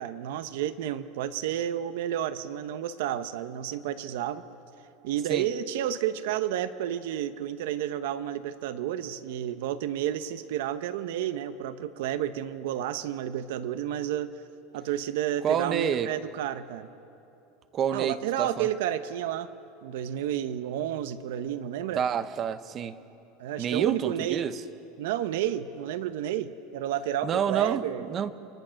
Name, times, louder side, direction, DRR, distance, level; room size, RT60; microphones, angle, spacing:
voice 1, 0.0-4.4 5.0-14.3 14.7-16.9 17.9-19.5 19.8-22.0 23.4-24.4 25.0-28.1, right 11 dB, 70° right, 12 dB, 1.0 m, -31 dB
voice 2, 15.4-16.1 17.7-18.7 22.0-23.0 23.6-24.6 27.2-28.3, right 8 dB, 25° right, 12 dB, 0.8 m, -28 dB
29.5 x 24.0 x 6.5 m, 2.9 s
supercardioid pair, 170°, 0 cm